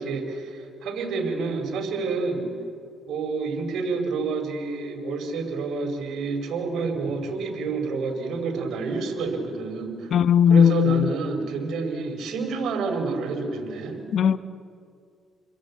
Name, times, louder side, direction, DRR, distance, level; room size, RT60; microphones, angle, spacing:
voice 1, 0.0-2.5 3.1-10.2 10.5-14.0, right 4 dB, 75° right, 4.9 m, -28 dB
voice 2, 10.1-11.1 14.1-14.4, left 8 dB, 60° left, 1.0 m, -17 dB
29.5 x 22.5 x 8.6 m
cardioid pair, 90°, 0 cm